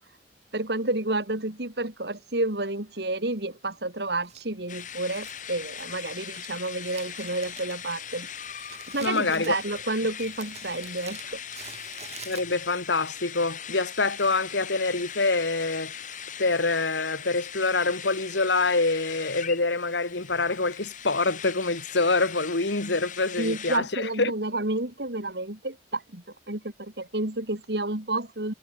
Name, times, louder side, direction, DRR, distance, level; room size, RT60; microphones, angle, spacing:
voice 1, 0.5-8.3 8.9-11.2 11.6-11.7 23.4-28.5, right 2 dB, 60° right, 2.8 m, -30 dB
Crumpling crinkling, 4.2-12.9, right 7 dB, 35° right, 7.4 m, -48 dB
sound 1, 4.7-23.8, left 9 dB, 45° left, 5.4 m, -40 dB
voice 2, 9.0-9.6 12.3-16.0 16.4-24.3, left 3 dB, 75° left, 2.0 m, -26 dB
head